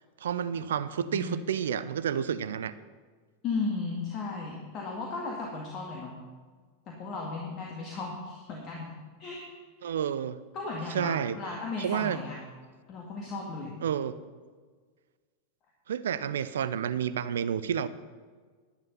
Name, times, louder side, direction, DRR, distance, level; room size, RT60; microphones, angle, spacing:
voice 1, 0.2-2.7 9.8-10.4 10.9-11.4 11.8-12.2 13.8-14.1 15.9-17.9, right 8 dB, 60° right, 15 dB, 0.5 m, -30 dB
voice 2, 1.0-1.4 3.4-6.1 6.9-8.9 9.2-9.4 10.5-12.4 12.9-13.7, left 3 dB, 35° left, -2 dB, 1.9 m, -35 dB
11.0 x 10.5 x 5.6 m, 1.5 s
figure-of-eight pair, 90°, 0 cm